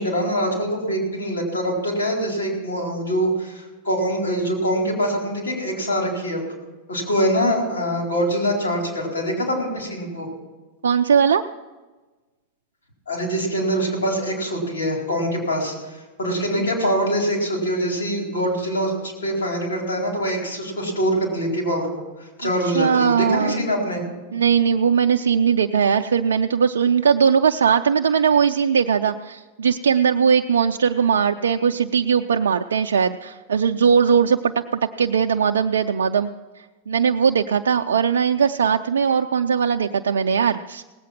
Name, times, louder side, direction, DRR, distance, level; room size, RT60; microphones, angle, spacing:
voice 1, 0.0-6.4 6.9-10.3 13.1-21.9 22.2-24.0, equal, 85° left, 0 dB, 4.3 m, -24 dB
voice 2, 10.8-11.4 16.6-16.7 22.4-23.6 24.3-36.3 36.9-40.8, right 7 dB, 90° right, 4 dB, 0.4 m, -19 dB
18.0 x 8.5 x 5.9 m, 1.2 s
hypercardioid pair, 110°, 0 cm